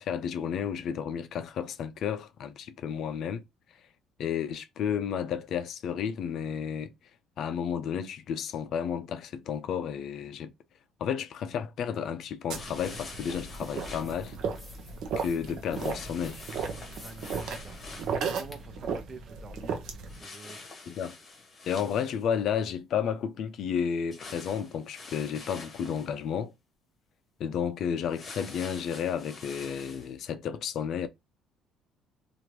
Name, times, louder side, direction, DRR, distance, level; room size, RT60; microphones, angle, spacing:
voice 1, 0.0-3.4 4.2-6.9 7.4-10.5 11.0-14.4 15.2-16.4 20.9-21.2 21.7-26.5 27.4-31.1, left 8 dB, 55° left, 0.4 m, -32 dB
sound 1, 12.5-14.1 15.7-18.2 20.1-22.4 24.1-26.1 28.0-30.1, left 3 dB, 30° left, 1.0 m, -46 dB
sound 2, 12.5-18.6, left 1 dB, 5° left, 0.8 m, -54 dB
sound 3, 12.5-20.2, right 5 dB, 60° right, 0.6 m, -35 dB
voice 2, 17.0-20.7, right 4 dB, 25° right, 0.4 m, -48 dB
2.9 x 2.4 x 3.0 m
cardioid pair, 140°, 0 cm